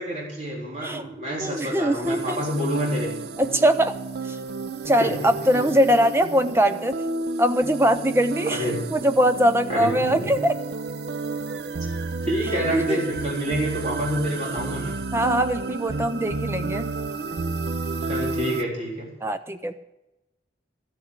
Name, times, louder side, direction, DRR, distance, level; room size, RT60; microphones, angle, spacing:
voice 1, 0.0-3.1 5.0-5.6 8.5-8.8 9.7-10.3 12.2-15.0 18.1-19.1, equal, 40° right, -4 dB, 3.8 m, -28 dB
voice 2, 1.4-2.4 3.4-3.9 4.3-4.4 4.9-7.0 7.4-8.6 8.9-10.5 12.7-13.0 15.1-16.9 19.2-19.7, equal, 15° right, 10 dB, 0.4 m, -21 dB
sound 1, 2.0-18.6, right 3 dB, 65° right, 0.5 m, -31 dB
13.0 x 8.5 x 6.6 m, 0.94 s
head